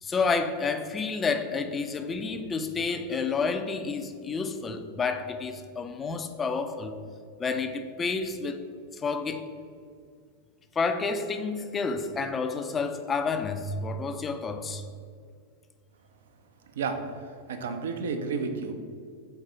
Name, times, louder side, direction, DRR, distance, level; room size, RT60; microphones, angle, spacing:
voice 1, 0.0-7.0 7.4-8.7 8.9-9.5 10.8-14.8, left 4 dB, 20° left, 8 dB, 0.4 m, -30 dB
voice 2, 17.5-18.7, right 5 dB, 60° right, 6 dB, 0.6 m, -31 dB
4.5 x 4.0 x 5.3 m, 2.2 s
figure-of-eight pair, 90°, 0 cm